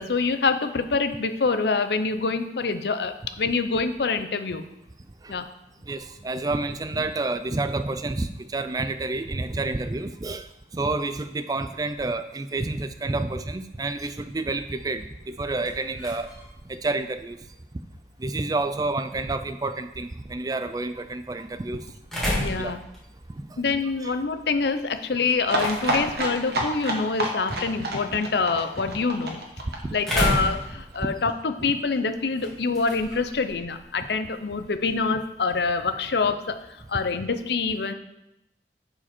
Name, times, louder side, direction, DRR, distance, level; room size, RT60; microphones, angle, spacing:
voice 1, 0.0-4.6 5.3-5.4 22.4-22.8 23.6-29.4 29.9-37.9, left 4 dB, 75° left, 9 dB, 0.6 m, -26 dB
voice 2, 5.9-10.5 10.7-16.3 16.7-17.4 18.2-21.8 22.6-22.7 23.3-23.6 24.0-24.1 28.1-28.2 29.8-30.0 31.0-31.1, right 2 dB, 20° right, 11 dB, 0.3 m, -29 dB
sound 1, 15.2-35.1, equal, ahead, 2.2 m, -36 dB
sound 2, 25.4-31.0 31.3-31.4 31.6-31.7 32.0-32.1, right 1 dB, 65° right, 1.5 m, -29 dB
11.0 x 4.9 x 4.4 m, 0.87 s
head